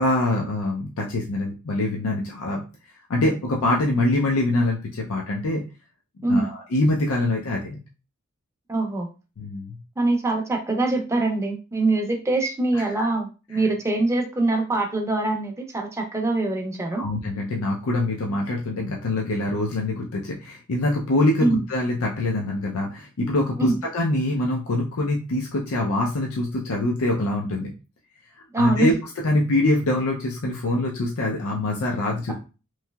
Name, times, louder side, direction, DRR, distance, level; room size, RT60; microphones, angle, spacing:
voice 1, 0.0-2.6 3.1-5.6 6.3-7.8 9.4-9.8 12.7-13.1 13.5-13.7 17.0-27.7 28.5-28.9 29.2-32.3, left 2 dB, 80° left, -1 dB, 0.5 m, -24 dB
voice 2, 8.7-9.1 10.0-17.0 21.4-21.6 23.6-23.7 28.5-28.9, right 2 dB, 15° right, 2 dB, 0.5 m, -23 dB
3.1 x 2.7 x 2.2 m, 0.32 s
head